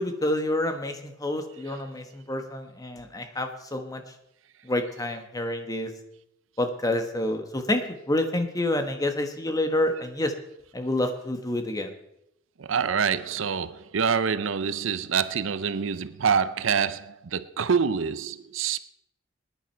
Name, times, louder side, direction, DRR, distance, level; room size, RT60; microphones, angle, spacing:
voice 1, 0.0-4.0 4.6-5.9 6.6-10.3 10.7-11.9, left 1 dB, 20° left, 1.3 m, -28 dB
voice 2, 12.6-18.8, right 6 dB, 70° right, 0.6 m, -26 dB
20.0 x 10.5 x 4.6 m
head